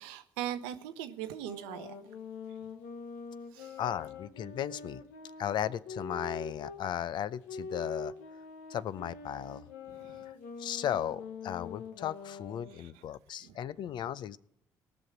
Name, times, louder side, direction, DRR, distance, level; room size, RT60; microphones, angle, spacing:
voice 1, 0.0-1.9 3.5-3.8 9.9-10.2 12.8-12.9 13.4-13.5, right 11 dB, 85° right, 10 dB, 0.8 m, -40 dB
sound 1, 1.3-6.8 7.4-12.8, left 4 dB, 90° left, 1.1 m, -44 dB
voice 2, 3.8-5.0 5.4-8.4 8.7-9.7 10.6-14.4, left 10 dB, 65° left, 18 dB, 0.5 m, -36 dB
18.0 x 6.2 x 6.0 m, 0.75 s
hypercardioid pair, 50°, 8 cm